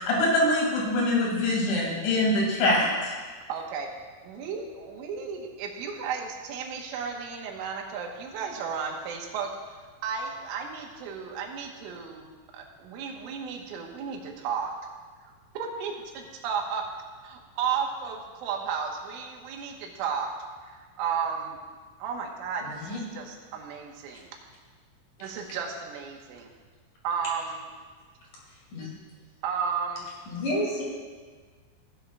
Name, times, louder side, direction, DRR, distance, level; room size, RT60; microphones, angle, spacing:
voice 1, 0.0-3.1, left 1 dB, 75° left, -2 dB, 4.5 m, -24 dB
voice 2, 3.5-3.9 4.2-9.5 10.0-14.7 15.3-16.8 17.2-20.3 20.7-21.6 22.0-24.3 25.2-26.5 27.0-27.6 29.4-30.1, right 6 dB, 90° right, 1 dB, 3.7 m, -33 dB
voice 3, 30.3-30.8, left 1 dB, 50° left, -5 dB, 3.5 m, -30 dB
16.5 x 11.5 x 2.3 m, 1.5 s
omnidirectional pair, 5.5 m